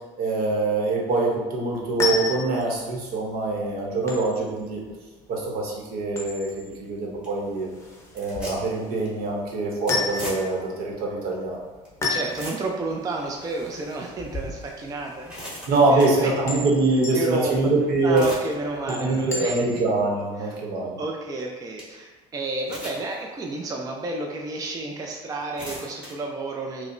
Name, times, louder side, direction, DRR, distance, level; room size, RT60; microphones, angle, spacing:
voice 1, 0.2-4.8 5.3-7.7 8.1-11.6 15.7-18.3 18.9-21.0, right 2 dB, 65° right, -1 dB, 0.9 m, -24 dB
sound 1, 1.7-20.0, left 3 dB, 15° left, 0.7 m, -35 dB
sound 2, 6.7-6.8 7.2-7.4 8.0-8.8 9.0-9.2 9.9-10.7 11.3-11.4 11.8-11.9 12.1-12.9 13.4-13.5 14.2-14.3 14.9-16.2 17.9-18.5 19.0-19.3 19.8-19.9 21.4-21.5 21.8-21.9 22.6-23.2 23.7-23.8 24.7-24.8 25.3-26.1, equal, 5° right, 1.3 m, -38 dB
voice 2, 12.1-16.6 17.1-17.7 18.0-19.6 20.4-20.6 21.0-26.9, right 2 dB, 20° right, 1 dB, 0.4 m, -31 dB
4.9 x 2.0 x 2.5 m, 1.3 s
supercardioid pair, 100°, 17 cm